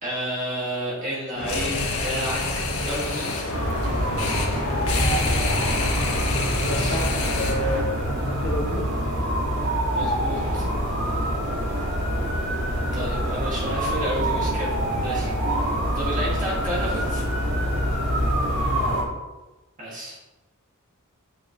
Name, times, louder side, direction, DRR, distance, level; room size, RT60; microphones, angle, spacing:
voice 1, 0.0-2.4 2.8-3.6 6.6-7.0 9.9-10.7 12.9-14.8 15.0-15.3 15.9-17.2 19.8-20.2, right 1 dB, 35° right, -6 dB, 2.1 m, -31 dB
sound 1, 1.4-7.8, left 2 dB, 75° left, 1.6 m, -27 dB
sound 2, 3.5-19.0, equal, 80° right, 2.4 m, -25 dB
voice 2, 6.6-7.0 7.3-8.9 12.1-12.2 18.7-19.2, left 1 dB, 45° left, -1 dB, 1.6 m, -31 dB
8.7 x 7.3 x 3.2 m, 1.1 s
head